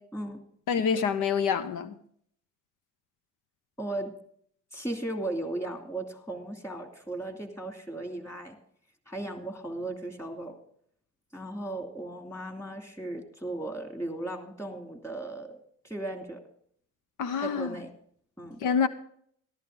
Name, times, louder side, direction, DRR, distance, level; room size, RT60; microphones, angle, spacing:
voice 1, 0.7-1.9 17.2-17.8 18.6-18.9, left 6 dB, 85° left, 0.9 m, -26 dB
voice 2, 3.8-4.1 4.7-8.6 9.1-10.6 11.3-15.6 15.8-16.4 17.4-17.9 18.4-18.6, right 2 dB, 10° left, 2.6 m, -36 dB
13.5 x 12.0 x 3.8 m
cardioid pair, 90°, 30 cm